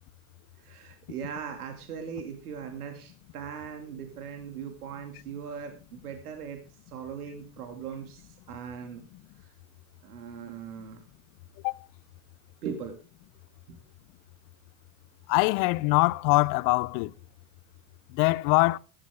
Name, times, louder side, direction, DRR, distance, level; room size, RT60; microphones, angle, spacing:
voice 1, 0.6-9.0 9.4-9.5 10.0-11.0 12.6-13.0 13.7-13.8, right 7 dB, 85° right, 2.3 m, -39 dB
voice 2, 15.3-17.1 18.1-18.8, left 24 dB, 50° left, 0.6 m, -23 dB
15.5 x 12.5 x 3.5 m
hypercardioid pair, 105°, 44 cm